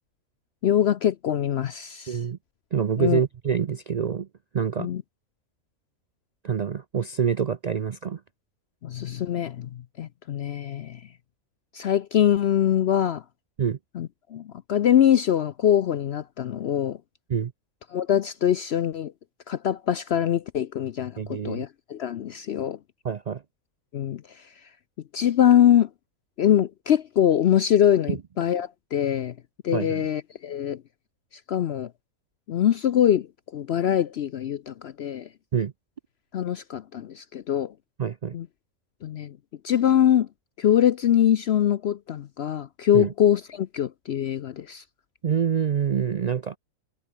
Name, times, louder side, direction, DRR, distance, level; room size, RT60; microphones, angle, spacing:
voice 1, 0.6-2.2 3.0-3.2 4.8-5.0 8.8-11.0 11.7-13.2 13.9-17.0 17.9-19.1 19.5-22.8 23.9-24.2 25.1-25.9 26.4-29.3 29.6-30.8 31.5-31.9 32.5-33.3 33.5-35.3 36.3-37.7 38.3-38.5 39.0-39.4 39.6-40.3 40.6-44.8, left 10 dB, 60° left, 0.7 m, -23 dB
voice 2, 2.1-2.4 2.7-4.3 4.5-4.9 6.4-8.2 13.6-13.8 17.3-17.5 21.2-21.6 23.0-23.4 28.1-28.2 29.7-30.1 35.5-35.7 38.0-38.4 42.9-43.1 45.2-46.6, right 7 dB, 70° right, 0.3 m, -26 dB
omnidirectional pair, 1.4 m